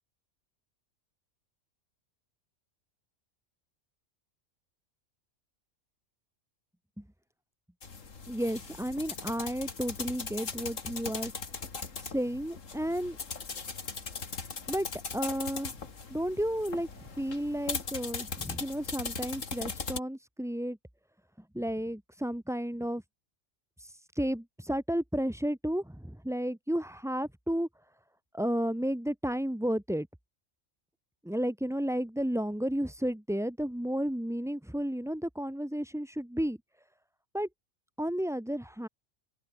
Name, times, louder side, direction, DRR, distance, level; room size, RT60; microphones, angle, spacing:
sound 1, 7.8-20.0, left 5 dB, 75° left, 2.5 m, -39 dB
voice 1, 8.3-11.3 12.0-13.2 14.7-14.9 15.1-15.7 16.1-20.8 21.5-23.0 23.8-27.7 28.3-30.1 31.2-36.6 37.3-37.5 38.0-38.9, equal, 5° right, 0.8 m, -32 dB
open air
omnidirectional pair, 1.3 m